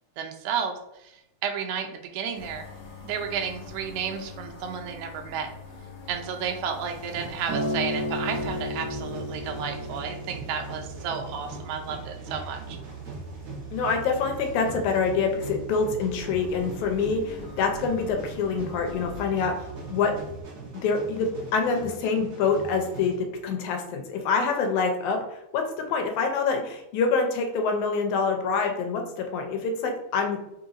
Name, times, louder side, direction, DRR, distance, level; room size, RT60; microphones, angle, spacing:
voice 1, 0.2-2.7 3.0-5.5 6.1-12.8, right 7 dB, 90° right, 4 dB, 2.0 m, -32 dB
sound 1, 2.3-20.4, equal, 70° left, 1.3 m, -43 dB
sound 2, 6.9-23.2, right 3 dB, 70° right, 0.8 m, -42 dB
Acoustic guitar, 7.5-11.8 12.6-12.7, equal, 50° right, 1.3 m, -33 dB
voice 2, 13.7-20.1 20.8-30.5, left 5 dB, 85° left, 4 dB, 2.1 m, -26 dB
4.5 x 3.9 x 2.5 m, 0.84 s
omnidirectional pair, 3.4 m